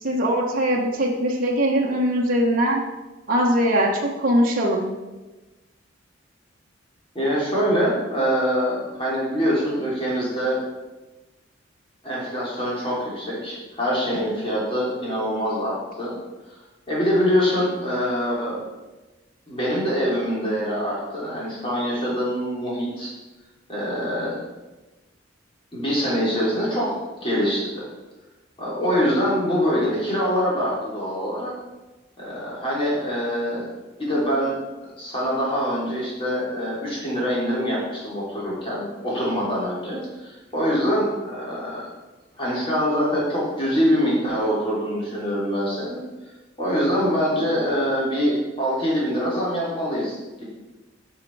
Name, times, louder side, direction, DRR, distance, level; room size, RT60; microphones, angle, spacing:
voice 1, 0.0-2.8 3.3-4.9, equal, 45° right, -2 dB, 1.0 m, -21 dB
voice 2, 7.1-10.6 12.0-16.2 16.9-18.6 19.5-23.1 23.7-24.4 25.7-26.9 27.2-27.9 28.6-31.5 32.2-33.6 34.0-34.6 34.8-41.9 42.4-46.0 46.6-50.4, equal, 25° left, -6 dB, 3.4 m, -24 dB
9.3 x 5.8 x 4.7 m, 1.1 s
head